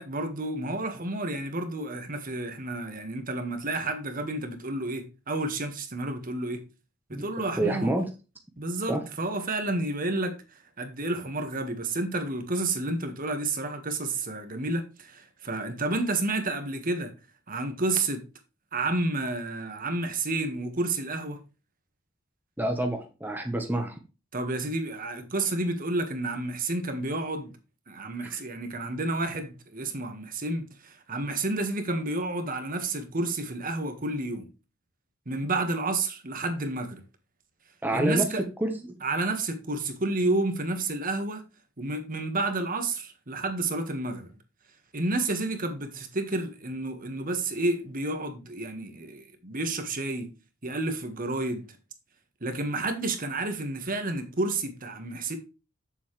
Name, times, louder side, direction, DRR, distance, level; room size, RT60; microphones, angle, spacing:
voice 1, 0.0-6.6 7.1-7.9 8.6-10.4 10.8-17.1 17.5-18.2 18.7-21.4 24.3-27.5 27.9-34.5 35.2-37.0 37.9-38.4 39.0-41.4 41.8-44.3 44.9-50.3 50.6-51.6 52.4-55.4, right 2 dB, 45° right, 1.6 m, -30 dB
voice 2, 7.6-8.0 8.9-9.0 22.6-24.0 37.8-38.3 38.6-38.7, right 1 dB, 10° right, 1.1 m, -27 dB
8.2 x 7.2 x 3.2 m
head